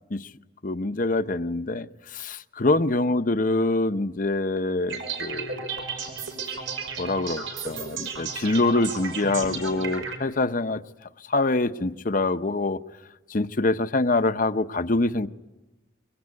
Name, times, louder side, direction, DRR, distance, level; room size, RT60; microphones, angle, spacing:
voice 1, 0.6-5.8 7.0-10.8 11.3-12.8 13.3-15.3, left 2 dB, 45° left, 0.8 m, -25 dB
sound 1, 4.9-10.2, right 5 dB, 85° right, 5.5 m, -33 dB
25.0 x 22.0 x 9.7 m
head